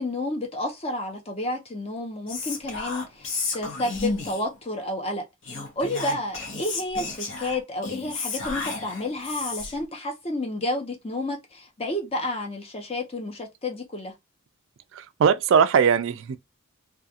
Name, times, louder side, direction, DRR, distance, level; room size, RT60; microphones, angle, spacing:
voice 1, 0.0-14.1, left 1 dB, 25° left, 0.7 m, -31 dB
Whispering, 2.3-4.6 5.4-9.9, left 3 dB, 60° left, 0.9 m, -32 dB
voice 2, 14.9-16.4, right 7 dB, 60° right, 0.3 m, -20 dB
2.4 x 2.4 x 2.7 m
head